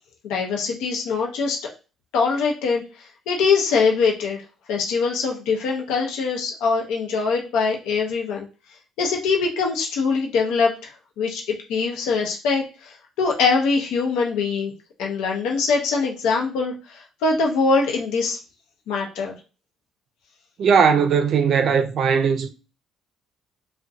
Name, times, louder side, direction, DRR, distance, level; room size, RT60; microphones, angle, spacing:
voice 1, 0.2-1.6 2.1-2.8 3.3-4.4 4.7-8.5 9.0-10.9 11.2-14.7 15.0-18.4 18.9-19.3, left 4 dB, 90° left, 0.6 m, -23 dB
voice 2, 20.6-22.5, right 6 dB, 60° right, 0.4 m, -18 dB
2.6 x 2.1 x 2.4 m
cardioid pair, 90°, 0 cm